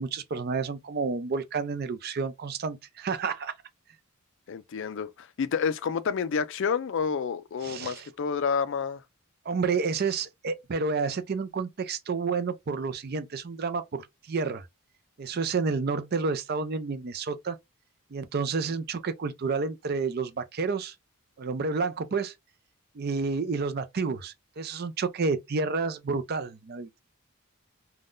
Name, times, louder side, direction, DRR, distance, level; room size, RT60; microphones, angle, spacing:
voice 1, 0.0-3.5 7.6-8.0 9.5-14.7 15.2-17.6 18.1-20.9 21.4-22.3 23.0-26.9, right 4 dB, 45° right, 0.4 m, -30 dB
voice 2, 4.5-9.0, left 6 dB, 60° left, 0.4 m, -29 dB
3.6 x 2.2 x 2.5 m
head